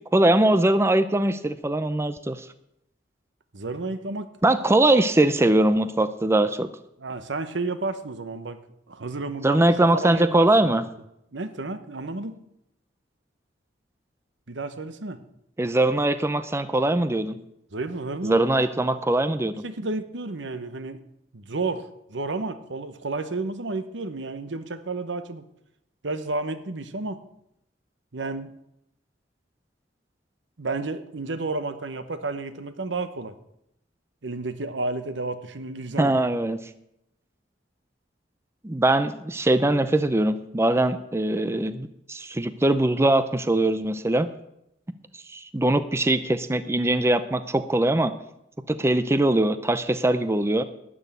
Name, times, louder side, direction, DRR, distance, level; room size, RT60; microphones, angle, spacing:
voice 1, 0.1-2.4 4.4-6.7 9.4-10.8 15.6-17.4 18.2-19.6 36.0-36.6 38.6-44.3 45.3-48.1 48.7-50.6, right 1 dB, 15° right, 12 dB, 0.5 m, -21 dB
voice 2, 3.5-4.3 7.0-8.6 8.9-10.9 11.3-12.4 14.5-15.2 17.7-18.5 19.6-21.0 21.3-25.4 26.0-27.2 28.1-28.5 30.6-33.3 34.2-36.1, right 3 dB, 80° right, 11 dB, 1.0 m, -31 dB
12.5 x 6.3 x 9.1 m, 0.79 s
head